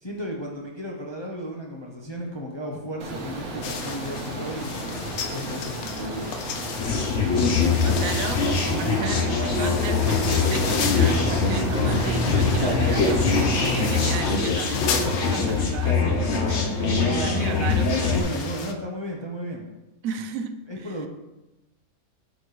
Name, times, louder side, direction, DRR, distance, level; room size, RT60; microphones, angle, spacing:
voice 1, 0.0-6.3 17.0-17.5 18.0-19.6 20.7-21.1, equal, 25° left, -1 dB, 0.6 m, -34 dB
sound 1, 3.0-14.2, right 1 dB, 55° right, 1.4 m, -31 dB
sound 2, 3.6-18.7, left 6 dB, 85° left, 1.1 m, -35 dB
sound 3, 6.8-18.2, left 4 dB, 55° left, 1.1 m, -23 dB
voice 2, 7.8-18.5 20.0-21.0, right 5 dB, 70° right, 7 dB, 1.0 m, -34 dB
8.2 x 5.1 x 3.2 m, 0.98 s
omnidirectional pair, 1.5 m